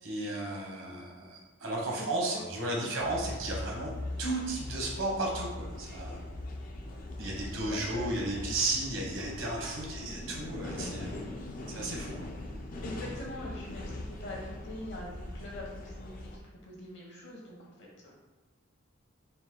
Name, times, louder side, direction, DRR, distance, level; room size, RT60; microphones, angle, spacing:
voice 1, 0.0-3.9 4.2-6.2 7.2-11.2 11.7-12.3, right 2 dB, 75° right, -2 dB, 1.1 m, -34 dB
voice 2, 2.0-2.4 2.7-3.3 7.6-8.5 12.8-18.1, left 1 dB, 60° left, -2 dB, 1.1 m, -44 dB
sound 1, 3.0-16.4, left 1 dB, 40° left, 0.5 m, -41 dB
4.0 x 2.6 x 3.7 m, 1.2 s
head